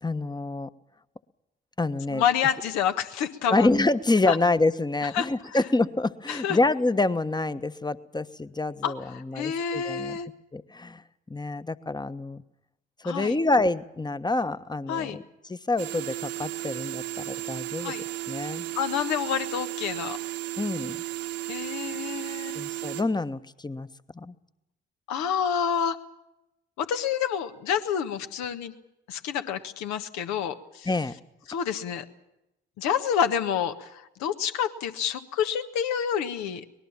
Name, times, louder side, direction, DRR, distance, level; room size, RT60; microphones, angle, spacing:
voice 1, 0.0-0.7 1.8-2.2 3.5-10.2 10.5-11.0 11.3-12.4 13.0-15.2 15.5-17.9 18.3-18.7 20.6-21.0 22.5-23.9 24.1-24.3 30.8-31.1, left 2 dB, 15° left, 13 dB, 1.2 m, -27 dB
voice 2, 2.1-3.7 4.3-4.4 5.1-5.3 6.3-6.6 8.8-10.3 13.0-13.4 14.9-15.2 17.8-18.0 18.7-20.2 21.5-22.7 25.1-26.0 26.8-28.7 29.1-30.9 31.5-32.0 32.8-36.9, left 8 dB, 70° left, 8 dB, 1.6 m, -28 dB
sound 1, 15.8-23.0, right 16 dB, 70° right, 1.7 m, -34 dB
24.0 x 20.0 x 7.4 m, 0.89 s
figure-of-eight pair, 45°, 30 cm